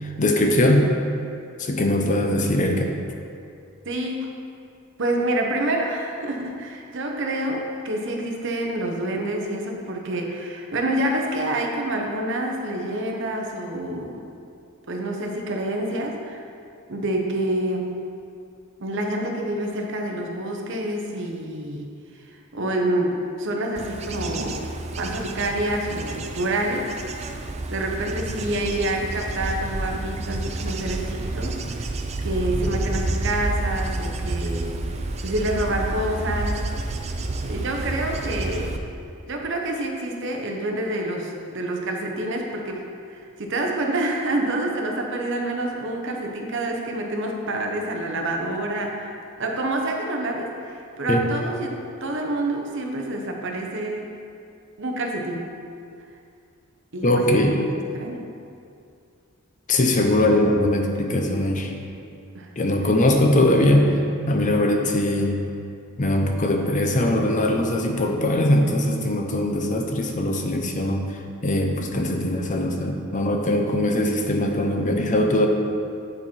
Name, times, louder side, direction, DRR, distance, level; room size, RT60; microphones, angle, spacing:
voice 1, 0.0-0.9 1.6-2.9 51.1-51.2 57.0-57.6 59.7-61.8 62.6-65.4 66.0-71.0 71.4-75.5, left 1 dB, 35° left, 3 dB, 0.6 m, -21 dB
voice 2, 3.8-4.3 5.0-14.2 14.9-16.4 16.9-18.1 18.8-21.9 22.2-24.7 25.0-27.3 27.7-31.9 32.2-34.7 35.2-36.6 37.4-38.8 39.3-54.1 54.8-55.5 56.9-58.2 62.3-62.5, right 1 dB, 55° right, 1 dB, 0.8 m, -27 dB
Bird / Insect / Wind, 23.8-38.8, right 2 dB, 30° right, 0.4 m, -29 dB
9.8 x 4.3 x 4.4 m, 2.4 s
head